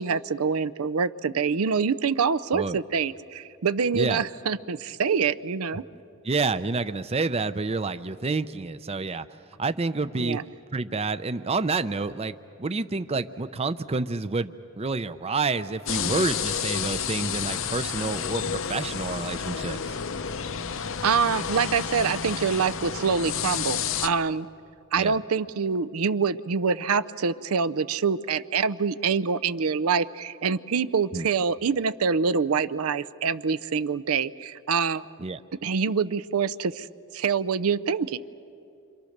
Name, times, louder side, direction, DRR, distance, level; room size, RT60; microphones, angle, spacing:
voice 1, 0.0-5.8 10.2-10.4 21.0-24.5 24.9-35.1 35.6-36.9 37.1-38.2, right 5 dB, 80° right, 15 dB, 0.6 m, -25 dB
voice 2, 6.2-9.3 9.6-10.4 10.7-20.0 25.0-25.2 31.1-31.3 35.2-35.4, right 3 dB, 30° right, 13 dB, 0.5 m, -28 dB
sound 1, 15.9-24.1, left 7 dB, 65° left, 0.7 m, -30 dB
29.0 x 26.0 x 6.6 m, 2.6 s
head